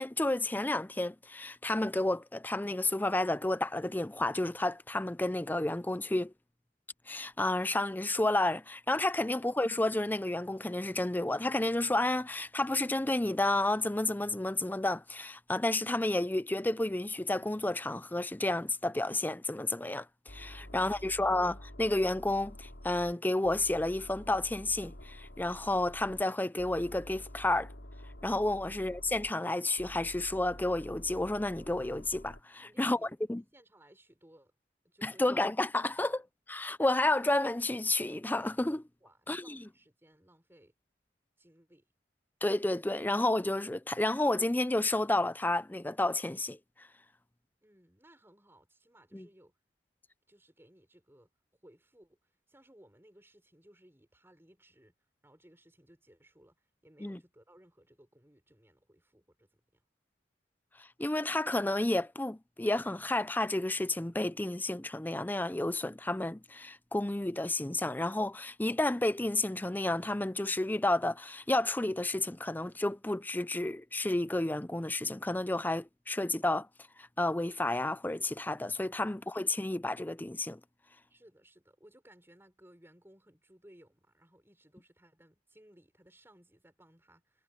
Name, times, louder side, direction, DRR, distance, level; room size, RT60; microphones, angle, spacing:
voice 1, 0.0-6.3 7.1-27.7 28.2-33.0 33.3-33.4 35.0-36.1 36.5-38.8 39.3-39.6 42.4-46.6 49.1-49.3 57.0-57.2 60.8-76.7 77.0-80.6, left 2 dB, 10° left, 0.5 m, -31 dB
sound 1, 20.3-23.1 23.4-26.2 26.6-29.3 29.8-32.4, left 1 dB, 80° left, 4.6 m, -48 dB
voice 2, 20.6-21.3 28.6-28.7 32.6-33.2 33.5-34.6 34.8-35.3 36.0-36.2 39.0-40.7 41.4-41.9 47.6-49.6 50.3-51.3 51.6-54.9 55.2-59.8 81.1-87.4, right 1 dB, 15° right, 4.9 m, -61 dB
head